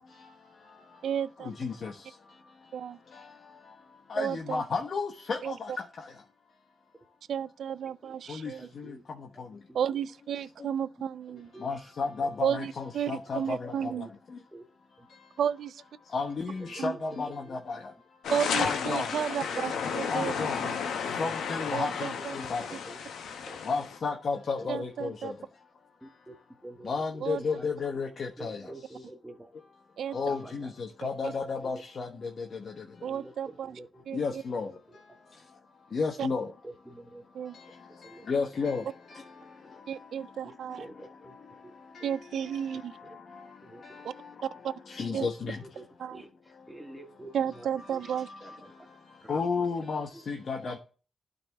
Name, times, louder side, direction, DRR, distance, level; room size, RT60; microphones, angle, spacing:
voice 1, 0.0-1.1 1.4-6.3 8.3-9.6 10.6-10.7 11.6-14.4 14.9-15.4 16.0-18.3 18.6-19.1 20.1-25.7 26.0-26.4 26.8-29.1 29.5-29.8 30.1-33.1 34.1-36.5 37.3-47.0 48.0-50.8, left 4 dB, 60° left, 1.1 m, -35 dB
voice 2, 1.0-1.5 2.7-3.0 4.2-4.6 5.4-5.5 7.3-8.7 9.7-11.5 12.4-14.1 15.4-15.8 16.8-17.0 18.3-20.4 20.6-20.8 21.7-22.4 24.7-25.3 27.2-27.4 30.0-30.2 31.0-31.3 33.0-33.8 34.1-34.4 36.2-36.3 37.3-37.6 39.9-40.9 42.0-42.9 44.0-44.1 44.4-44.7 45.1-45.3 46.0-46.2 47.3-48.3, right 8 dB, 75° right, 0.3 m, -33 dB
voice 3, 8.0-9.0 11.5-11.7 12.2-12.3 14.5-14.6 15.0-15.1 16.6-16.7 17.4-17.6 19.4-19.6 19.9-20.3 21.5-21.6 22.4-23.0 23.3-23.6 24.6-24.7 26.0-26.3 26.6-27.2 27.6-27.7 28.4-29.5 30.3-30.5 31.6-31.7 33.1-34.0 36.2-36.3 36.9-37.2 38.0-38.2 40.4-41.4 41.6-41.7 43.0-43.2 43.6-43.8 45.8-45.9 46.1-46.3 46.7-47.3 47.6-48.0 48.4-48.5 49.2-49.4 50.6-50.7, right 1 dB, 10° right, 1.6 m, -47 dB
sound 1, 18.2-24.0, left 6 dB, 85° left, 0.9 m, -33 dB
12.0 x 4.1 x 3.4 m
supercardioid pair, 50°, 0 cm